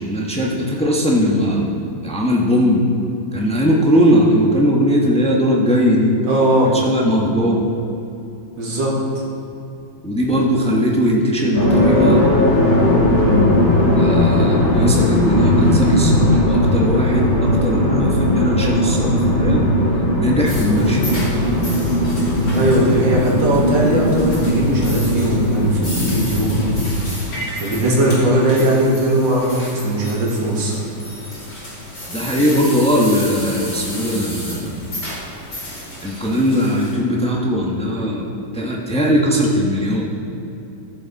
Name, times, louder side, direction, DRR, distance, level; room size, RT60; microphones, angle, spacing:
voice 1, 0.0-1.7 2.0-2.8 3.3-6.2 6.6-7.7 10.0-12.2 13.9-19.7 20.2-21.0 32.1-34.9 36.0-38.3 38.5-40.0, equal, 5° left, -2 dB, 0.7 m, -19 dB
voice 2, 6.3-6.7 8.6-8.9 22.5-26.8 27.5-30.8, right 1 dB, 55° right, -4 dB, 2.6 m, -19 dB
sound 1, 11.5-26.9, left 1 dB, 65° left, 3.1 m, -17 dB
sound 2, 20.5-36.9, left 1 dB, 40° left, 3.3 m, -33 dB
14.5 x 7.1 x 4.1 m, 2.7 s
omnidirectional pair, 2.4 m